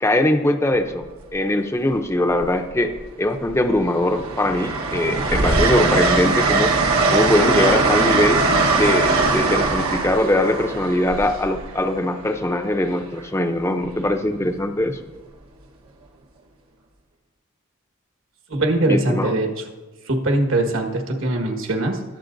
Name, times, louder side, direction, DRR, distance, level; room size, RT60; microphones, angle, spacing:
voice 1, 0.0-1.0 1.3-2.9 3.2-6.7 7.1-8.4 8.7-15.0 18.9-19.3, left 1 dB, 10° left, 7 dB, 0.5 m, -21 dB
Train, 0.7-1.0 2.3-3.1 3.5-12.2 13.8-14.1, right 3 dB, 90° right, 1.2 m, -21 dB
voice 2, 18.5-19.6 20.0-22.0, right 2 dB, 70° right, 4 dB, 1.5 m, -21 dB
20.5 x 7.7 x 2.6 m, 1.2 s
head